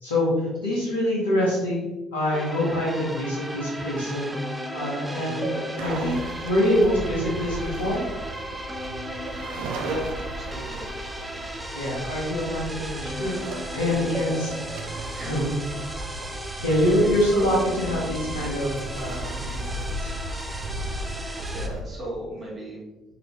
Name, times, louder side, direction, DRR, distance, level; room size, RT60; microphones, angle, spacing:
voice 1, 0.0-4.4 4.7-8.0 11.7-14.5 15.2-15.8 16.6-20.1, left 1 dB, 90° left, -6 dB, 0.9 m, -25 dB
sound 1, 2.3-21.7, equal, 15° right, 0.5 m, -35 dB
sound 2, 5.8-21.8, right 1 dB, 70° right, 0.3 m, -36 dB
voice 2, 9.8-10.9 12.4-12.5 15.1-15.4 17.0-17.2 21.5-22.8, right 1 dB, 45° right, -7 dB, 1.2 m, -35 dB
2.9 x 2.6 x 2.9 m, 1.0 s
hypercardioid pair, 55°, 0 cm